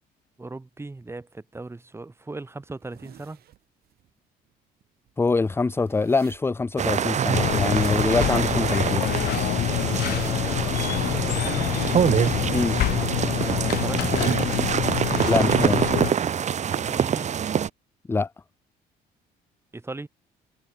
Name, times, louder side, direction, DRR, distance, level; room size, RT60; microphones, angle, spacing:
voice 1, 0.4-3.4 9.7-11.7 13.2-14.3 16.7-17.3 19.7-20.1, right 2 dB, 15° right, 5.8 m, -38 dB
sound 1, 1.5-1.6 2.0-2.1 2.5-4.1 4.5-4.6 4.8-9.2 9.7-10.4 10.7-10.8 11.2-12.1 12.4-15.8, right 12 dB, 65° right, 6.6 m, -51 dB
voice 2, 5.2-9.1 12.5-12.8 15.3-16.0 18.1-18.3, left 3 dB, 15° left, 0.6 m, -24 dB
sound 2, 6.8-17.7, right 8 dB, 45° right, 2.2 m, -25 dB
sound 3, 7.3-16.1, left 15 dB, 65° left, 0.6 m, -26 dB
cardioid pair, 110°, 17 cm